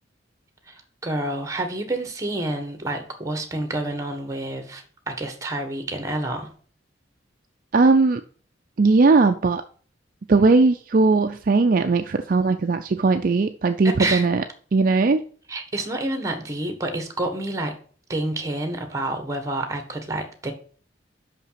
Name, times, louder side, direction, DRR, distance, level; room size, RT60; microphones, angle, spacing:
voice 1, 0.7-6.5 13.8-14.3 15.5-17.7 18.1-20.5, right 1 dB, 15° right, 6 dB, 1.4 m, -28 dB
voice 2, 7.7-8.2 8.8-9.6 10.3-14.4 14.7-15.2, right 3 dB, 50° right, 7 dB, 0.4 m, -18 dB
5.9 x 5.6 x 5.7 m, 0.43 s
head